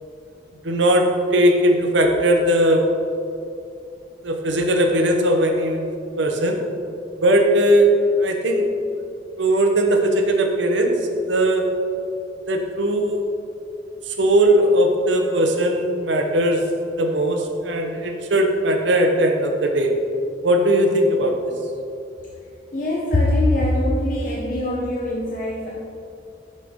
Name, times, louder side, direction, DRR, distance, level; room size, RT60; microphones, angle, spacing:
voice 1, 0.6-3.0 4.2-6.6 7.2-8.7 9.4-11.8 12.5-13.3 14.1-20.0 20.4-21.5, right 1 dB, 80° right, 4 dB, 0.8 m, -19 dB
voice 2, 22.7-25.8, left 1 dB, 45° left, -4 dB, 0.6 m, -22 dB
6.5 x 6.5 x 3.6 m, 2.6 s
head